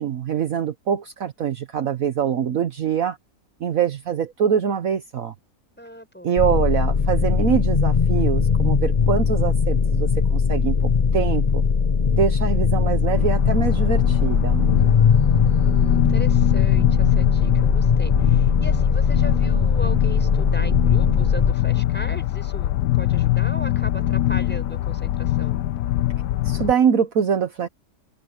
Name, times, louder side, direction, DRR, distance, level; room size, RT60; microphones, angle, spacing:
voice 1, 0.0-3.2 3.6-5.3 6.2-11.6 12.1-14.7 26.4-27.7, right 8 dB, 60° right, 1.4 m, -24 dB
voice 2, 5.8-6.5 14.8-25.6, equal, 5° left, 6.3 m, -38 dB
sound 1, 6.4-21.5, left 6 dB, 45° left, 0.5 m, -20 dB
sound 2, 13.0-26.7, left 14 dB, 75° left, 1.2 m, -23 dB
open air
omnidirectional pair, 1.7 m